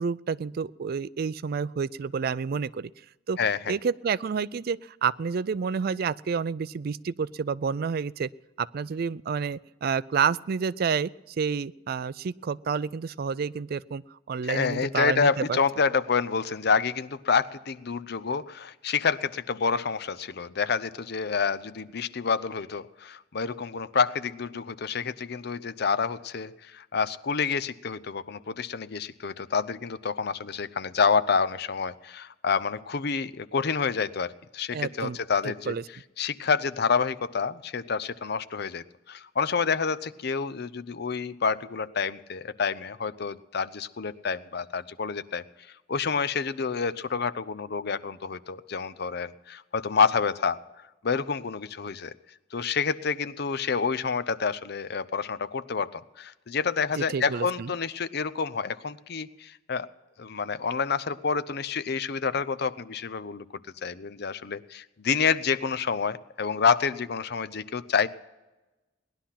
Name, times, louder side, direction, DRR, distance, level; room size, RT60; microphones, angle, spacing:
voice 1, 0.0-2.9 3.3-3.4 3.7-8.3 8.6-15.6 34.7-35.2 35.4-35.8 57.0-57.7, right 6 dB, 55° right, 19 dB, 0.4 m, -29 dB
voice 2, 3.4-3.7 14.4-35.8 36.2-45.4 45.9-50.6 51.0-52.1 52.5-59.9 60.2-63.4 63.8-68.1, left 5 dB, 60° left, 15 dB, 0.7 m, -28 dB
18.5 x 11.5 x 5.8 m, 1.1 s
head